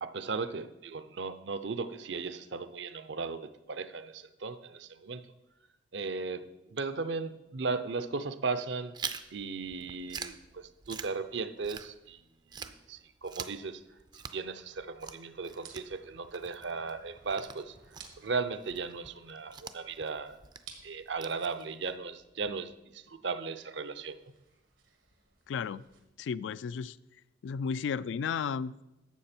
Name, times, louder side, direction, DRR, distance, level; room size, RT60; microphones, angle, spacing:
voice 1, 0.0-5.2 5.9-9.0 9.3-12.2 12.6-13.8 14.1-17.8 18.2-20.4 20.8-24.2, right 4 dB, 65° right, 12 dB, 0.6 m, -36 dB
Chewing mastication, 8.9-12.2 12.5-22.0, right 6 dB, 25° right, 0.4 m, -46 dB
sound 1, 14.6-26.0, right 6 dB, 90° right, 1.7 m, -58 dB
voice 2, 25.5-25.8 26.2-26.9 27.4-28.8, left 6 dB, 75° left, 17 dB, 0.3 m, -33 dB
12.0 x 7.6 x 4.3 m, 0.97 s
head